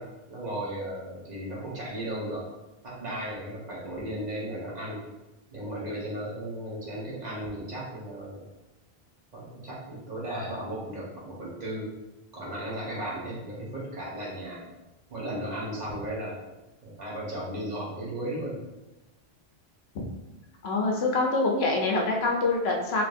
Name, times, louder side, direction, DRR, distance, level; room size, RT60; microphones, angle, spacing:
voice 1, 0.0-2.5 2.8-5.0 5.5-8.4 9.3-11.9 12.3-14.7 15.1-16.4 16.8-18.6, right 1 dB, 40° right, -6 dB, 1.2 m, -35 dB
voice 2, 20.6-23.0, left 3 dB, 75° left, 0 dB, 0.9 m, -25 dB
3.2 x 2.9 x 2.6 m, 1.0 s
omnidirectional pair, 1.1 m